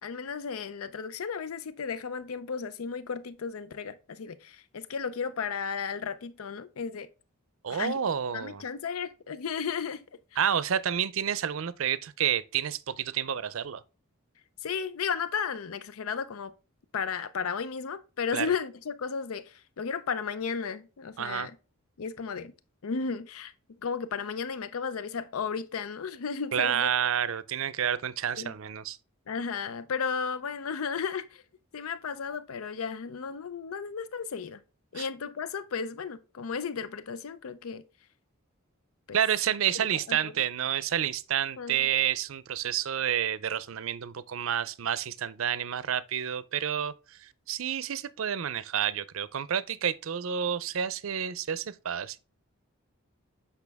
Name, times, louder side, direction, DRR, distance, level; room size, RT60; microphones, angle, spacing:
voice 1, 0.0-7.1 7.7-8.0 8.3-10.0 14.6-16.5 16.9-21.5 22.0-22.5 22.8-23.5 23.8-26.9 28.4-28.5 29.3-31.4 31.7-34.6 34.9-37.8 39.1-39.2 40.1-40.3 41.6-41.8, left 6 dB, 90° left, 0.5 m, -34 dB
voice 2, 7.6-8.6 10.4-13.8 18.3-18.5 21.2-21.5 26.5-29.0 34.9-35.1 39.1-52.2, right 9 dB, 70° right, 0.5 m, -29 dB
8.2 x 5.6 x 3.5 m
head